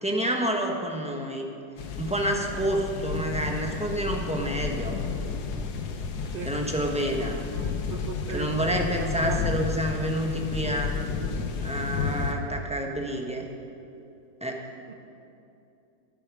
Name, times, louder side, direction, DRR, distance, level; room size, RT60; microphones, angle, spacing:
voice 1, 0.0-1.5 2.0-5.0 6.4-7.5 8.3-10.9 11.6-13.4 14.4-14.6, right 1 dB, 5° right, 1 dB, 0.8 m, -28 dB
sound 1, 1.8-12.3, left 5 dB, 65° left, 1.4 m, -32 dB
voice 2, 7.2-9.4 14.9-15.0, right 5 dB, 70° right, 6 dB, 0.5 m, -38 dB
14.0 x 8.7 x 6.2 m, 2.7 s
omnidirectional pair, 1.9 m